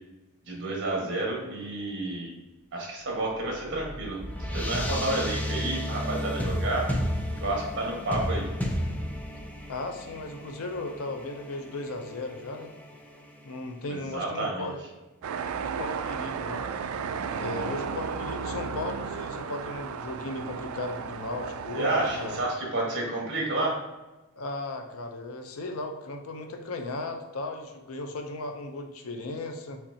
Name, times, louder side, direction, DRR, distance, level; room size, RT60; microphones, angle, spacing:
voice 1, 0.5-2.3 2.7-4.2 4.5-6.8 7.4-8.4 13.9-14.7 21.7-23.8, right 2 dB, 55° right, -2 dB, 1.5 m, -30 dB
sound 1, 3.3-14.1, equal, 5° left, 0.4 m, -33 dB
voice 2, 9.7-12.7 13.4-14.8 15.6-16.7 17.4-22.4 24.4-29.8, left 2 dB, 80° left, 5 dB, 0.6 m, -36 dB
sound 2, 15.2-22.4, right 6 dB, 75° right, 0.3 m, -34 dB
5.8 x 3.3 x 2.7 m, 1.1 s
head